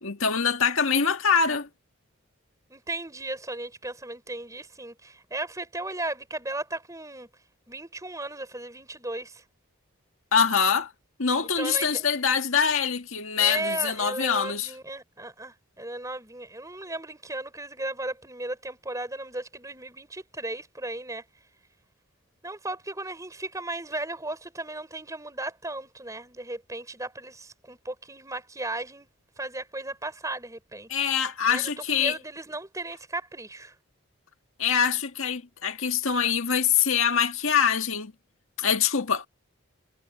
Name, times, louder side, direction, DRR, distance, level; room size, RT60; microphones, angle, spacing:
voice 1, 0.0-1.7 10.3-10.9 11.2-14.7 30.9-32.2 34.6-38.1 38.6-39.3, left 7 dB, 70° left, 1.8 m, -24 dB
voice 2, 2.7-7.3 7.7-9.4 11.6-12.0 13.4-21.2 22.4-29.1 29.4-30.9 31.4-33.7, right 2 dB, 15° right, 4.4 m, -35 dB
head